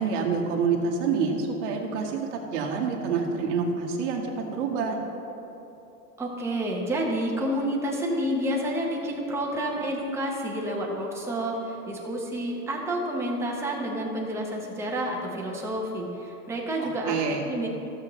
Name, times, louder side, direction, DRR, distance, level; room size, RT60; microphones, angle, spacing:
voice 1, 0.0-5.0 16.8-17.4, right 5 dB, 50° right, 0 dB, 1.6 m, -27 dB
voice 2, 6.2-17.7, right 1 dB, 5° right, -2 dB, 0.8 m, -29 dB
15.0 x 6.9 x 3.1 m, 2.9 s
supercardioid pair, 155°, 46 cm